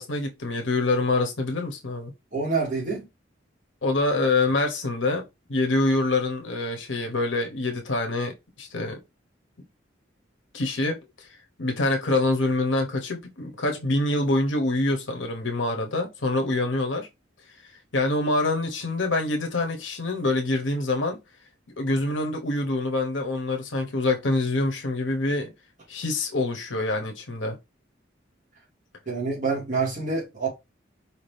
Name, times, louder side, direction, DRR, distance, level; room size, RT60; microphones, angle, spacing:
voice 1, 0.0-2.1 3.8-9.0 10.5-11.3 11.6-17.1 17.9-21.2 21.8-25.5 25.9-27.6, left 2 dB, 80° left, 1.1 m, -25 dB
voice 2, 2.3-3.0 29.1-30.5, right 4 dB, 45° right, 2.4 m, -27 dB
4.9 x 2.9 x 3.4 m
head